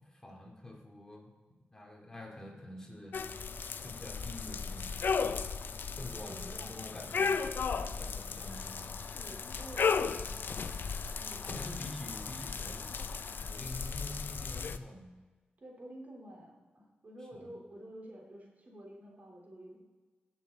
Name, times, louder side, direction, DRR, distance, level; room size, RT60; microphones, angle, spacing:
voice 1, 0.0-1.3 1.7-3.2 3.8-5.3 5.7-6.4 6.7-7.4 8.0-8.9 11.5-13.1 13.4-15.1 17.2-17.5, left 1 dB, 15° left, 0 dB, 2.5 m, -47 dB
sound 1, 3.1-14.8, left 5 dB, 70° left, 0.5 m, -35 dB
voice 2, 6.3-7.1 7.8-8.1 9.1-10.8 11.2-11.6 15.6-19.8, equal, 50° right, -1 dB, 3.6 m, -50 dB
sound 2, 8.5-13.5, left 3 dB, 45° left, 0.8 m, -53 dB
16.0 x 7.2 x 4.0 m, 1.4 s
cardioid pair, 65°, 4 cm